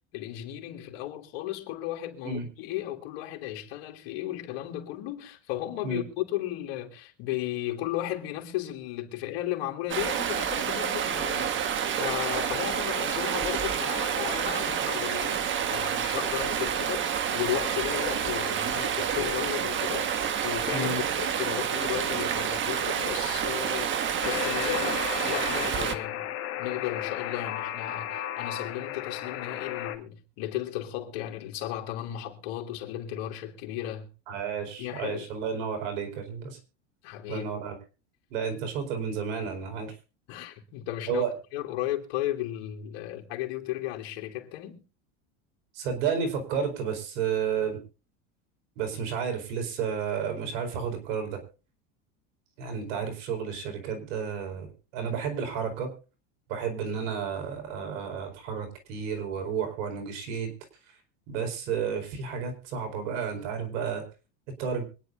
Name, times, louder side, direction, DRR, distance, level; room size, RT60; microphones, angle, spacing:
voice 1, 0.1-11.6 12.0-20.9 21.2-26.3 26.6-34.1 34.8-35.3 37.0-37.5 40.3-41.2 41.5-44.8, left 14 dB, 60° left, 2.9 m, -35 dB
Stream, 9.9-25.9, right 8 dB, 30° right, 1.4 m, -29 dB
Alarm, 24.2-29.9, left 12 dB, 40° left, 2.0 m, -34 dB
voice 2, 34.3-36.6 37.3-37.7 38.3-39.9 41.1-41.3 45.7-47.8 48.8-51.4 52.6-55.9 56.5-60.5 61.3-64.0 64.6-64.8, right 6 dB, 75° right, 4.8 m, -31 dB
25.0 x 10.0 x 2.6 m
supercardioid pair, 125°, 36 cm